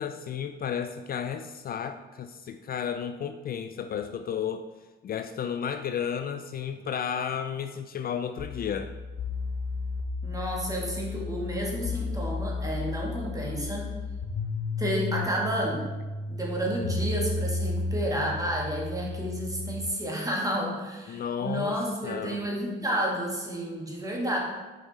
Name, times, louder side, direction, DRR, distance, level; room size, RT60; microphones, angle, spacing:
voice 1, 0.0-4.6 5.0-8.9 21.1-21.8 22.0-22.5, left 8 dB, 50° left, 8 dB, 0.4 m, -33 dB
sound 1, 8.4-19.8, left 3 dB, 75° left, 0.9 m, -33 dB
voice 2, 10.2-13.9 14.8-15.9 16.3-24.4, right 1 dB, 15° right, -2 dB, 1.8 m, -31 dB
6.3 x 5.2 x 4.1 m, 1.2 s
cardioid pair, 90°, 20 cm